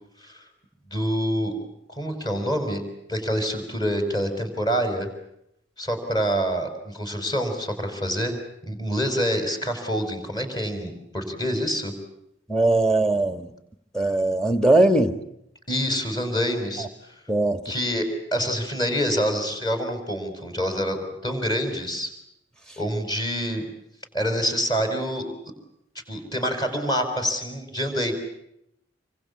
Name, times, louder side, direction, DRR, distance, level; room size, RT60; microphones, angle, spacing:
voice 1, 0.9-1.5 1.9-2.8 3.1-5.1 5.8-8.4 8.6-11.9 15.7-16.9 17.7-21.0 21.2-22.1 22.8-23.6 24.1-25.3 26.1-28.1, equal, 25° left, 5.4 m, -26 dB
voice 2, 12.5-13.5 13.9-15.2 17.3-17.6, right 2 dB, 5° left, 1.7 m, -20 dB
27.0 x 24.5 x 8.5 m
head